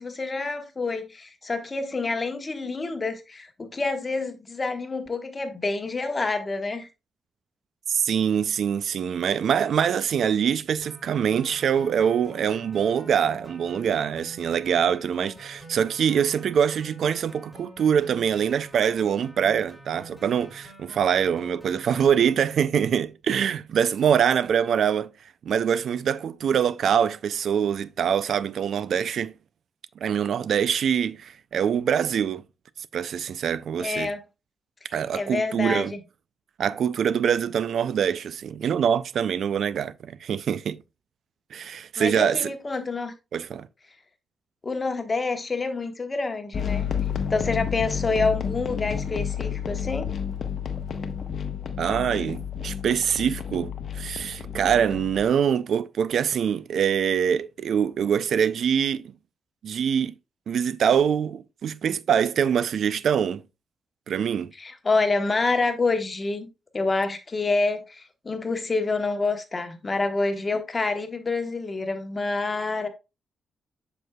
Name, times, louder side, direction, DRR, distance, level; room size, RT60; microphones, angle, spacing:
voice 1, 0.0-6.9 33.8-34.2 35.1-36.0 42.0-43.1 44.6-46.9 47.3-50.1 64.6-66.5 66.7-72.9, left 3 dB, 25° left, 1.1 m, -27 dB
voice 2, 7.9-25.1 25.4-29.3 30.0-32.4 32.9-34.1 34.9-35.9 36.6-40.8 41.5-42.5 43.3-43.7 51.8-59.1 59.6-60.1 60.5-63.4 64.1-64.5, right 8 dB, 70° right, 0.3 m, -24 dB
sound 1, 10.8-22.3, right 1 dB, ahead, 3.2 m, -46 dB
sound 2, 46.5-55.3, left 7 dB, 50° left, 0.9 m, -31 dB
7.8 x 6.0 x 2.2 m
cardioid pair, 120°, 0 cm